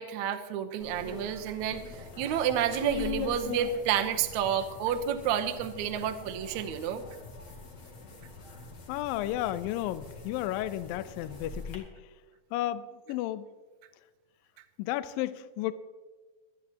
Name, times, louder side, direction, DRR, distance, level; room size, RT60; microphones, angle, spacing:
voice 1, 0.0-7.0, right 9 dB, 85° right, 6 dB, 1.7 m, -30 dB
sound 1, 0.8-11.8, left 4 dB, 40° left, 1.7 m, -42 dB
voice 2, 8.9-11.9 12.5-13.4 14.8-15.7, left 13 dB, 80° left, 13 dB, 2.1 m, -33 dB
24.0 x 9.7 x 2.9 m, 1.3 s
omnidirectional pair, 4.5 m